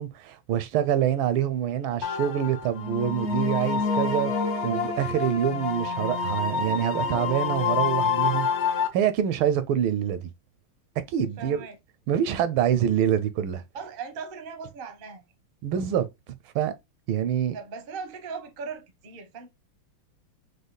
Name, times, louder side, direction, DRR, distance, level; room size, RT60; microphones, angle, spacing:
voice 1, 0.0-4.3 4.6-8.5 8.9-10.3 11.1-11.7 12.1-13.6 15.6-16.1 16.5-16.7 17.1-17.6, right 9 dB, 85° right, 1.5 m, -25 dB
sound 1, 2.0-8.9, left 5 dB, 65° left, 0.6 m, -27 dB
voice 2, 11.4-11.8 13.7-15.2 17.5-19.5, right 5 dB, 50° right, 0.6 m, -38 dB
5.0 x 2.2 x 3.9 m
omnidirectional pair, 2.3 m